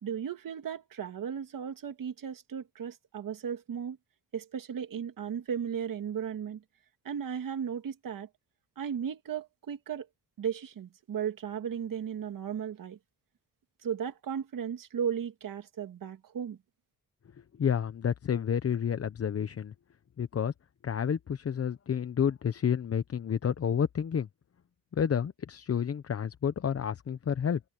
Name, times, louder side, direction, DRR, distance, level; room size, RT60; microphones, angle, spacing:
voice 1, 0.0-4.0 4.3-6.6 7.0-8.3 8.8-10.1 10.4-13.0 13.8-16.6, right 8 dB, 60° right, 2.2 m, -35 dB
voice 2, 17.6-19.7 20.2-20.5 20.8-24.3 24.9-27.6, left 8 dB, 40° left, 0.9 m, -30 dB
cardioid pair, 110°, 37 cm